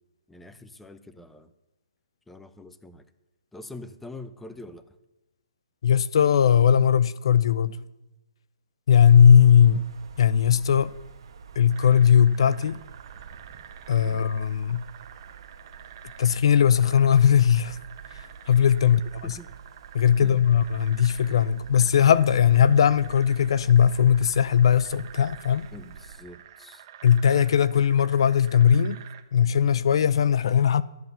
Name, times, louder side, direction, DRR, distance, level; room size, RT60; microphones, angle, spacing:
voice 1, 0.3-1.5 2.3-3.1 3.5-5.0 18.8-19.0 19.2-19.5 20.2-20.4 25.7-26.8, left 2 dB, 5° left, 0.7 m, -44 dB
voice 2, 5.8-7.8 8.9-9.9 10.2-10.9 11.6-12.8 13.9-14.9 16.2-17.8 18.5-19.4 19.9-25.7 27.0-29.0 29.3-30.8, left 8 dB, 60° left, 0.5 m, -19 dB
sound 1, 8.9-26.2, right 6 dB, 60° right, 1.5 m, -47 dB
sound 2, 11.7-29.2, right 10 dB, 40° right, 1.1 m, -49 dB
13.0 x 7.8 x 6.8 m
hypercardioid pair, 145°, 3 cm